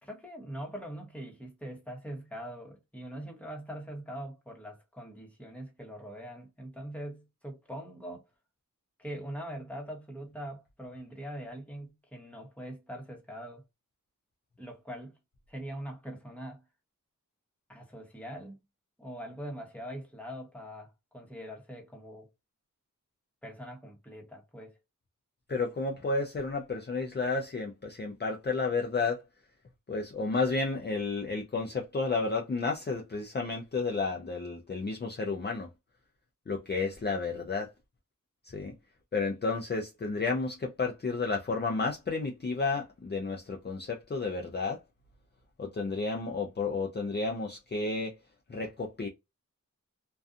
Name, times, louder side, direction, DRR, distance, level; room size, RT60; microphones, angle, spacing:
voice 1, 0.0-8.3 9.0-13.6 14.6-15.2 15.5-16.6 17.7-18.6 19.0-22.3 23.4-24.8, equal, 5° left, 1.0 m, -42 dB
voice 2, 25.5-29.2 29.9-35.7 36.5-37.7 38.4-38.7 39.1-44.8 45.6-48.2 48.5-49.1, left 3 dB, 30° left, 0.5 m, -31 dB
2.5 x 2.3 x 2.4 m
wide cardioid pair, 45°, 33 cm